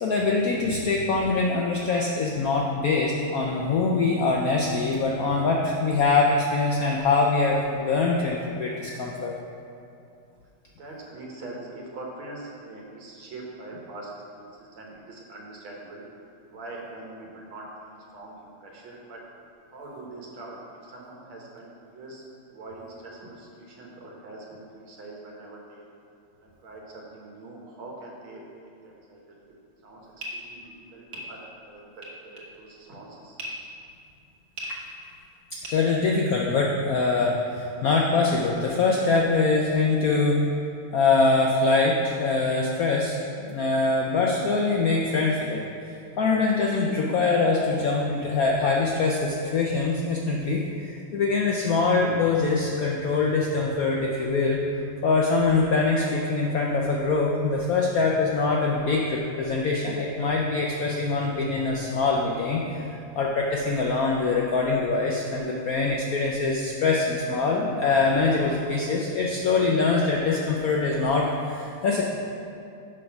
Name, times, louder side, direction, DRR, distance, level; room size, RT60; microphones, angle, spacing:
voice 1, 0.0-9.3 35.6-40.4 40.9-54.6 55.0-72.0, left 3 dB, 75° left, -1 dB, 0.8 m, -24 dB
voice 2, 10.8-16.0 16.5-19.2 19.7-20.6 20.8-22.2 22.5-25.8 26.4-29.4 29.8-33.4, right 2 dB, 80° right, -2 dB, 2.1 m, -43 dB
sound 1, 30.0-36.6, equal, 55° right, 1.5 m, -40 dB
6.4 x 5.3 x 5.8 m, 2.5 s
omnidirectional pair, 2.2 m